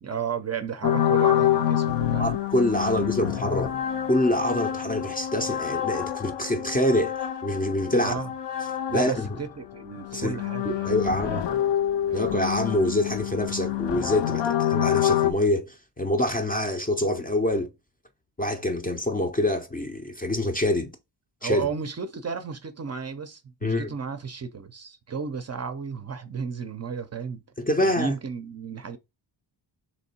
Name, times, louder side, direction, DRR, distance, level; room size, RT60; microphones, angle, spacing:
voice 1, 0.0-2.3 2.8-3.3 8.0-8.3 8.9-11.6 12.0-12.2 14.5-14.6 21.4-27.4 27.8-29.0, right 6 dB, 35° right, 0.4 m, -33 dB
sound 1, 0.8-9.4 9.7-15.3, left 11 dB, 70° left, 0.6 m, -27 dB
voice 2, 2.2-3.8 4.1-7.1 7.4-8.1 8.9-9.3 10.1-10.4 10.6-11.5 12.1-17.7 18.4-20.9 21.4-21.7 23.6-23.9 27.6-28.1, left 1 dB, 20° left, 0.4 m, -25 dB
3.6 x 3.0 x 4.1 m
wide cardioid pair, 165°, 44 cm